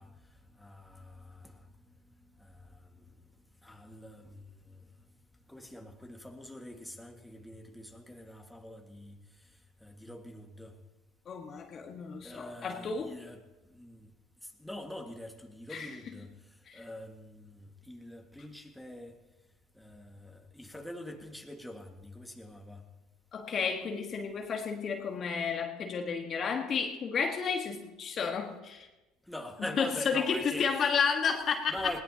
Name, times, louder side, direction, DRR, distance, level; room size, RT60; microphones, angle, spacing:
voice 1, 0.0-3.2 3.6-4.9 5.5-10.8 12.2-14.1 14.4-19.2 19.7-22.8 29.3-30.9 31.7-32.0, left 1 dB, 5° left, 1.8 m, -45 dB
voice 2, 11.3-13.1 15.7-15.9 16.7-16.8 23.3-28.9 29.8-31.7, left 6 dB, 45° left, 1.6 m, -32 dB
20.5 x 17.0 x 2.9 m
hypercardioid pair, 75°, 0 cm